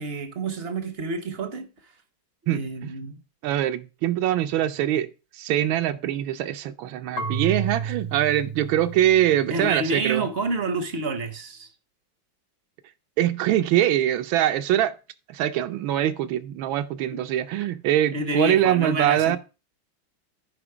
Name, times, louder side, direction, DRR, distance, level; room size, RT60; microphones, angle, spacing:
voice 1, 0.0-1.7 2.5-3.2 9.5-11.7 17.1-17.2 17.6-17.7 18.1-19.4, right 2 dB, 55° right, 0.7 m, -28 dB
voice 2, 2.5-2.9 3.4-10.3 13.2-14.9 15.3-19.4, right 12 dB, 85° right, 1.4 m, -23 dB
Marimba xylophone / Wood, 7.2-10.0, right 6 dB, 80° left, 1.8 m, -32 dB
10.0 x 5.0 x 4.8 m
omnidirectional pair, 2.1 m